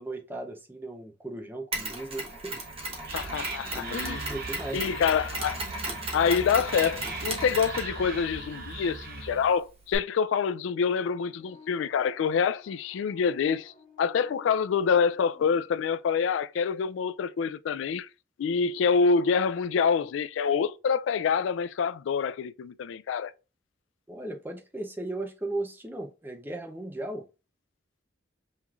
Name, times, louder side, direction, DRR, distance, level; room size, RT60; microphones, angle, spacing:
voice 1, 0.0-2.9 3.6-5.0 24.1-27.3, right 2 dB, 10° right, 0.5 m, -37 dB
Mechanisms, 1.7-10.0, right 2 dB, 30° right, 1.1 m, -37 dB
Whispering, 2.6-9.6, right 3 dB, 55° right, 0.9 m, -39 dB
voice 2, 3.1-4.2 4.7-5.6 6.1-13.7 14.0-18.1 18.4-23.3, left 6 dB, 85° left, 0.3 m, -26 dB
sound 1, 11.3-15.7, left 2 dB, 30° left, 0.8 m, -55 dB
5.5 x 3.1 x 2.3 m
head